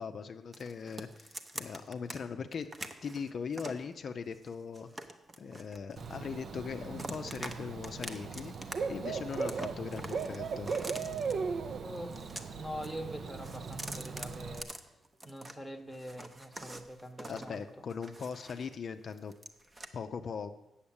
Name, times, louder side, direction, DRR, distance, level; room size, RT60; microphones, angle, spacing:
voice 1, 0.0-2.7 3.0-4.9 5.4-10.8 17.3-19.3 19.9-20.5, left 6 dB, 50° left, 7 dB, 0.5 m, -40 dB
sound 1, 0.5-2.2 2.5-3.8 4.3-6.4 6.7-7.6 7.8-8.7 9.0-11.3 12.0-12.9 13.2-15.6 15.9-18.8 19.1-19.9, right 2 dB, 25° right, 0.8 m, -45 dB
Bird / Cricket, 6.0-14.6, right 5 dB, 50° right, 0.6 m, -38 dB
voice 2, 11.8-14.7 15.2-17.6, equal, 5° right, 7 dB, 1.1 m, -44 dB
8.5 x 7.2 x 8.7 m, 0.94 s
cardioid pair, 130°, 0 cm